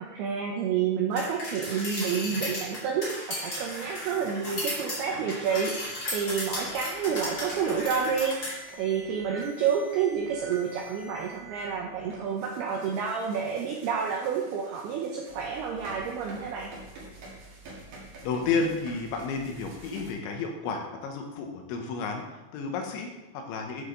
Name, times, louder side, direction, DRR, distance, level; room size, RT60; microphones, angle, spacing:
voice 1, 0.0-16.7, right 7 dB, 80° right, 0 dB, 2.4 m, -29 dB
sound 1, 1.2-8.5, left 1 dB, 30° left, 2.0 m, -35 dB
sound 2, 3.5-4.8 6.0-20.1, right 2 dB, 55° right, 2.7 m, -48 dB
voice 2, 18.2-23.8, left 4 dB, 90° left, 3 dB, 3.3 m, -32 dB
9.0 x 6.7 x 3.8 m, 1.0 s
omnidirectional pair, 5.3 m